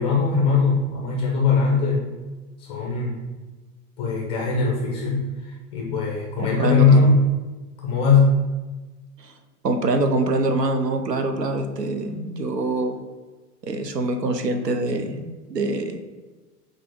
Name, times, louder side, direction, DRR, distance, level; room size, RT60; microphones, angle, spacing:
voice 1, 0.0-2.1 2.6-3.2 4.0-7.3 7.8-8.4, left 4 dB, 15° left, -3 dB, 0.4 m, -20 dB
voice 2, 6.4-6.9 9.2-9.3 9.6-13.0 13.6-16.0, right 2 dB, 85° right, 7 dB, 0.6 m, -24 dB
5.4 x 2.5 x 3.5 m, 1.3 s
figure-of-eight pair, 90°, 47 cm